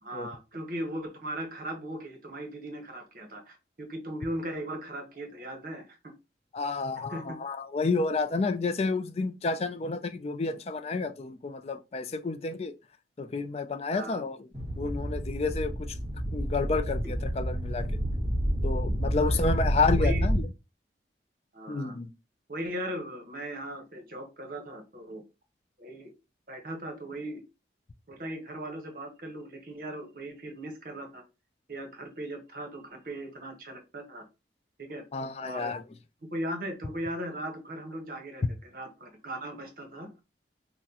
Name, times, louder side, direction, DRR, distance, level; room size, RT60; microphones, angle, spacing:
voice 1, 0.0-6.1 7.1-7.4 13.9-14.2 19.2-19.5 20.0-20.2 21.5-22.0 22.5-25.2 25.8-26.1 26.5-27.4 28.1-31.2 31.7-34.2 34.8-35.0 35.4-35.7 36.3-40.1, right 1 dB, 50° right, 1.0 m, -38 dB
voice 2, 6.5-12.8 13.2-14.5 14.8-16.0 16.3-17.9 18.6-20.4 21.7-22.1 35.1-35.8, left 3 dB, 35° left, 0.3 m, -30 dB
sound 1, 14.5-20.4, equal, 30° right, 1.7 m, -29 dB
5.7 x 2.1 x 2.8 m
head